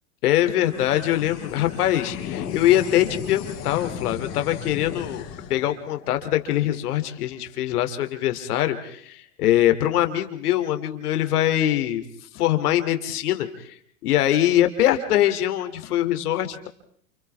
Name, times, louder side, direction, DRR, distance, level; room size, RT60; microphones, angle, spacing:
voice 1, 0.2-5.2 5.5-12.0 12.3-13.8 14.0-16.7, left 12 dB, 65° left, 8 dB, 2.9 m, -23 dB
sound 1, 0.6-7.3, left 8 dB, 30° left, 4.0 m, -36 dB
29.5 x 28.5 x 3.5 m, 0.65 s
hypercardioid pair, 145°, 49 cm